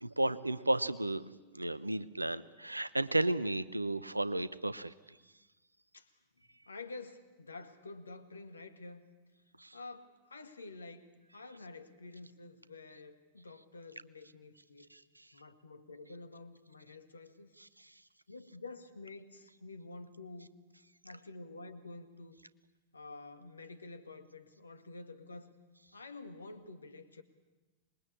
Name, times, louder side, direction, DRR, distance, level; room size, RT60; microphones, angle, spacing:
voice 1, 0.0-1.2 1.5-4.9 9.6-9.8 14.9-15.0 17.8-17.9, right 2 dB, 85° right, 17 dB, 0.9 m, -33 dB
voice 2, 6.7-9.0 9.7-14.9 15.3-17.5 18.3-20.5 21.0-22.4 22.9-25.5 25.9-27.2, left 3 dB, 75° left, 9 dB, 2.0 m, -49 dB
26.5 x 21.5 x 8.5 m, 1.2 s
figure-of-eight pair, 90°, 0 cm